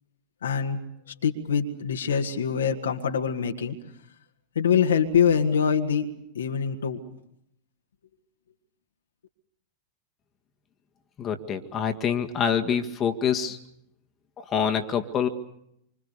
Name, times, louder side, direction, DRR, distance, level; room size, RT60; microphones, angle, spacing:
voice 1, 0.4-0.8 1.2-3.8 4.6-6.1 6.4-7.0, left 7 dB, 65° left, 4 dB, 1.9 m, -24 dB
voice 2, 11.2-13.6 14.4-15.3, left 7 dB, 25° left, 5 dB, 1.9 m, -26 dB
27.0 x 25.5 x 6.8 m, 0.77 s
figure-of-eight pair, 90°, 0 cm